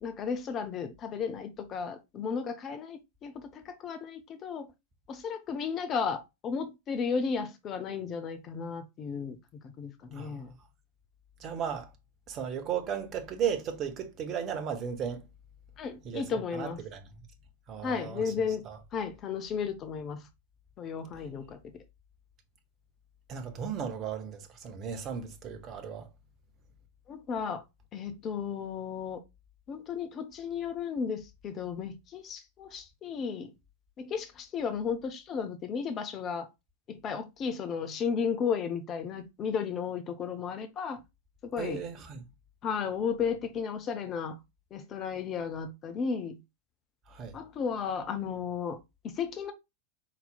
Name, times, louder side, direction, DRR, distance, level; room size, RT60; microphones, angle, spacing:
voice 1, 0.0-3.3 3.7-4.7 5.1-9.4 9.8-10.5 15.8-16.8 17.8-18.6 18.9-20.2 20.8-21.6 27.1-27.6 27.9-29.2 29.7-33.5 34.0-36.5 36.9-41.0 41.4-41.8 42.6-44.4 44.7-46.4 47.3-48.8 49.2-49.5, left 6 dB, 30° left, 0.6 m, -34 dB
voice 2, 10.1-10.6 11.4-11.9 12.3-15.2 16.0-17.1 17.7-18.8 23.3-26.1 41.6-42.3 47.1-47.4, right 8 dB, 30° right, 0.9 m, -35 dB
4.1 x 4.0 x 2.3 m
figure-of-eight pair, 90°, 0 cm